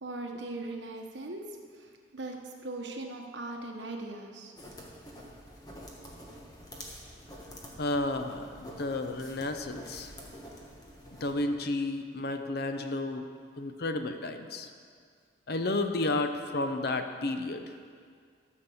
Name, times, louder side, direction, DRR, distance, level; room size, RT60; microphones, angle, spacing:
voice 1, 0.0-1.4 1.7-4.5, right 2 dB, 75° right, 2 dB, 1.2 m, -39 dB
sound 1, 4.6-11.3, equal, 20° left, 1.4 m, -47 dB
voice 2, 7.8-10.1 11.1-13.3 13.6-14.7 15.5-17.7, left 2 dB, 60° left, 7 dB, 0.7 m, -32 dB
13.5 x 5.3 x 7.0 m, 2.1 s
head